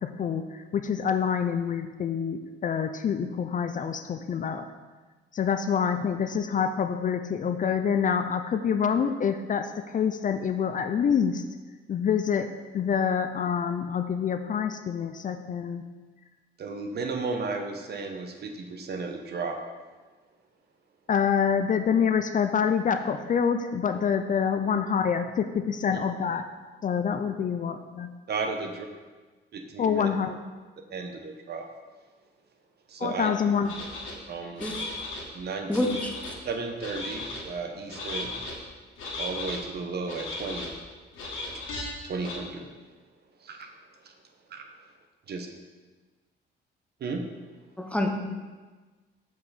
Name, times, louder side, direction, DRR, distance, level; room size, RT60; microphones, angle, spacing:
voice 1, 0.0-4.6 5.3-11.4 11.9-12.5 12.7-15.8 21.1-26.4 26.8-28.1 29.8-30.4 33.0-33.7, left 7 dB, 40° left, 8 dB, 0.4 m, -26 dB
voice 2, 16.6-19.6 28.3-28.9 29.5-30.1 30.9-31.6 32.9-33.3 34.3-34.7 35.3-36.0 36.4-38.3 39.2-40.7 41.7-42.7 43.4-43.7 44.5-44.6 45.3-45.5 47.0-47.2, right 4 dB, 55° right, 4 dB, 0.9 m, -34 dB
sound 1, 33.7-34.1 34.6-35.2 35.7-36.3 36.8-37.4 37.9-38.5 39.0-39.6 40.1-40.7 41.1-41.8 42.2-42.4, left 2 dB, 90° left, 1.6 m, -36 dB
voice 3, 35.7-36.3 47.8-48.1, left 1 dB, 5° left, 3 dB, 0.9 m, -28 dB
7.4 x 4.7 x 4.1 m, 1.3 s
cardioid pair, 90°, 20 cm